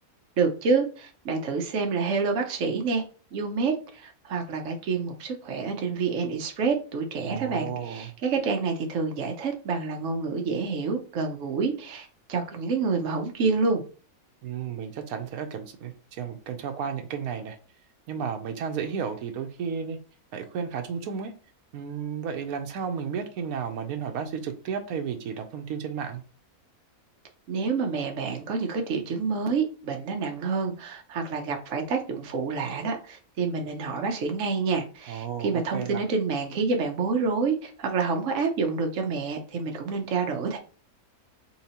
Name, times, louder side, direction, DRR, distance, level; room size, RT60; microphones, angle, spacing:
voice 1, 0.4-3.0 3.3-13.8 27.5-40.6, right 4 dB, 60° right, 1.1 m, -28 dB
voice 2, 7.2-8.1 14.4-17.6 18.1-20.0 20.3-21.3 21.7-26.2 35.1-36.0, right 7 dB, 80° right, 1.1 m, -33 dB
4.3 x 3.8 x 2.8 m
omnidirectional pair, 1.5 m